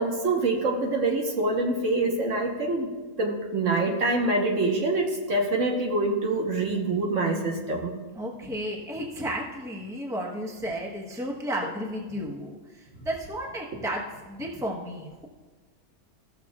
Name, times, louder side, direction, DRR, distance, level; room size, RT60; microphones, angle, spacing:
voice 1, 0.0-2.9 3.2-8.0, right 2 dB, 60° right, 0 dB, 1.4 m, -25 dB
voice 2, 8.2-15.3, equal, ahead, -1 dB, 0.9 m, -33 dB
15.5 x 6.6 x 2.4 m, 1.3 s
omnidirectional pair, 1.5 m